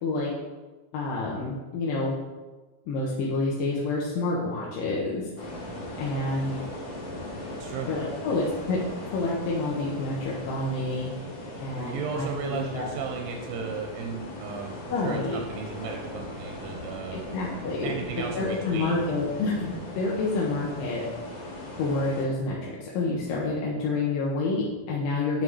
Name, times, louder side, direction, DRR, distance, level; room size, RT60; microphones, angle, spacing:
voice 1, 0.9-2.2 2.9-5.3 6.0-6.6 7.9-8.8 9.1-11.1 11.6-12.9 14.9-15.4 17.1-17.9 18.3-21.0 21.8-25.4, left 3 dB, 75° left, -5 dB, 2.5 m, -28 dB
sound 1, 5.4-22.2, left 1 dB, 45° left, 1.8 m, -39 dB
voice 2, 11.7-17.3 17.8-19.0, right 5 dB, 90° right, 2 dB, 2.4 m, -35 dB
9.2 x 4.9 x 3.2 m, 1.2 s
omnidirectional pair, 4.1 m